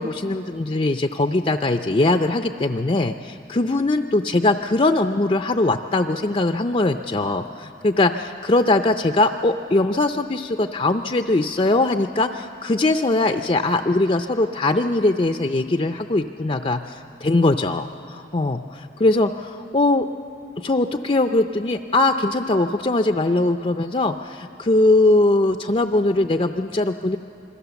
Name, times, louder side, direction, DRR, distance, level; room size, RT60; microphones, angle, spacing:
voice 1, 0.0-20.0 20.6-27.2, left 2 dB, 30° left, 7 dB, 0.5 m, -21 dB
26.5 x 22.5 x 7.0 m, 2.8 s
head